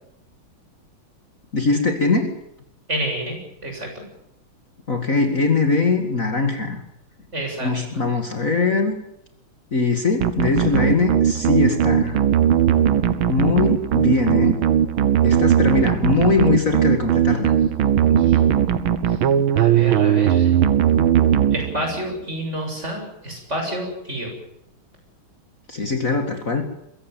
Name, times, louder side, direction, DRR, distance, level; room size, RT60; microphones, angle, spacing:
voice 1, 1.5-2.3 4.9-6.8 7.6-9.0 9.7-12.2 13.3-14.6 15.2-17.5 25.7-26.6, left 4 dB, 40° left, 5 dB, 2.4 m, -21 dB
voice 2, 2.9-4.0 7.3-8.0 17.5-18.4 19.1-19.2 19.5-20.5 21.5-24.3, right 1 dB, 30° right, 2 dB, 7.9 m, -29 dB
sound 1, 10.2-22.1, right 9 dB, 75° right, 1.8 m, -18 dB
22.5 x 16.5 x 9.3 m, 0.81 s
omnidirectional pair, 2.3 m